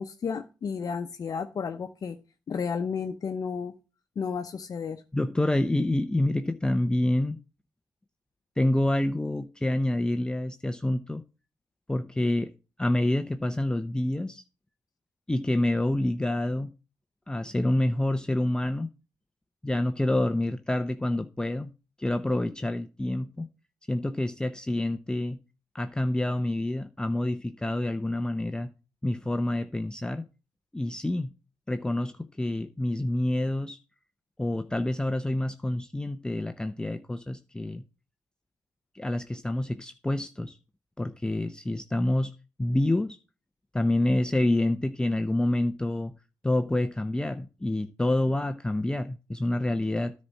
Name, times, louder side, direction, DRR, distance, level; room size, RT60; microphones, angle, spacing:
voice 1, 0.0-2.2 2.5-3.7 4.2-5.0, left 6 dB, 55° left, 0.8 m, -32 dB
voice 2, 5.1-7.4 8.6-11.2 11.9-12.5 12.8-14.4 15.3-16.7 17.3-18.9 19.6-21.7 22.0-23.5 23.9-25.4 25.7-28.7 29.0-30.3 30.7-31.3 31.7-33.8 34.4-37.8 38.9-40.6 41.0-42.3 42.6-43.2 43.7-46.1 46.4-50.1, left 1 dB, 10° left, 0.7 m, -27 dB
9.9 x 4.2 x 7.4 m
cardioid pair, 80°, 7 cm